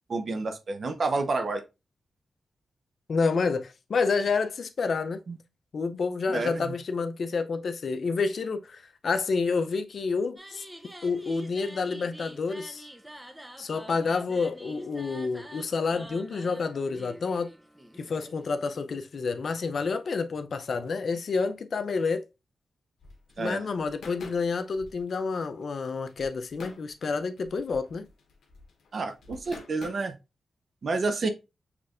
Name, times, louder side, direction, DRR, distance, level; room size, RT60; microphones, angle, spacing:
voice 1, 0.1-1.6 5.3-5.4 6.3-6.7 23.4-23.7 28.9-30.2 30.8-31.3, right 3 dB, 60° right, 0.8 m, -29 dB
voice 2, 3.1-5.2 5.7-10.7 11.0-12.8 13.6-17.5 18.0-22.2 23.4-28.1, left 4 dB, 65° left, 0.5 m, -29 dB
sound 1, 10.4-18.5, equal, 10° right, 0.6 m, -47 dB
sound 2, 23.0-29.9, left 4 dB, 85° left, 0.9 m, -48 dB
5.9 x 3.3 x 2.5 m
cardioid pair, 70°, 0 cm